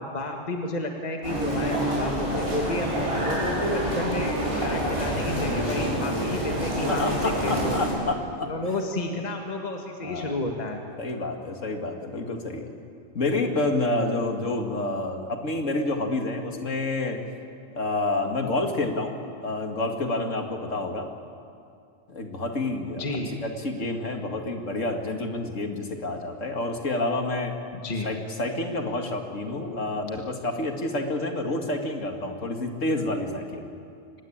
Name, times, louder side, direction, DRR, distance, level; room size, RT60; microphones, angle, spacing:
voice 1, 0.0-7.8 8.5-10.8 23.0-23.3 27.7-28.1, left 2 dB, 35° left, 2 dB, 1.8 m, -31 dB
sound 1, 1.2-7.9, equal, 25° right, 6.6 m, -27 dB
voice 2, 6.8-8.5 10.0-10.4 11.0-12.7 13.1-17.2 17.7-21.1 22.1-27.5 28.0-33.7, left 2 dB, 85° left, 4 dB, 2.5 m, -28 dB
24.5 x 20.0 x 8.8 m, 2.5 s
omnidirectional pair, 1.3 m